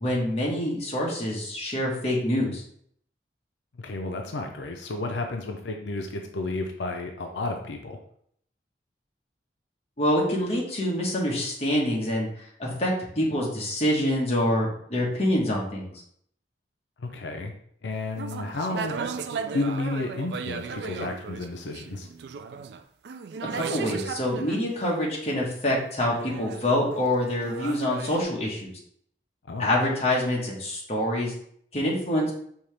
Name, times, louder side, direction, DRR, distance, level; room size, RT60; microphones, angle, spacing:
voice 1, 0.0-2.6 10.0-12.3 12.6-15.9 23.5-28.7 29.6-31.3 31.7-32.3, left 1 dB, 35° left, -3 dB, 1.2 m, -26 dB
voice 2, 3.7-8.0 17.0-17.5 17.8-19.0 19.5-22.1 29.5-29.7, left 2 dB, 90° left, 3 dB, 0.5 m, -32 dB
sound 1, 18.1-24.6 26.1-28.2, right 5 dB, 70° right, 0.3 m, -35 dB
5.5 x 2.8 x 3.3 m, 0.65 s
head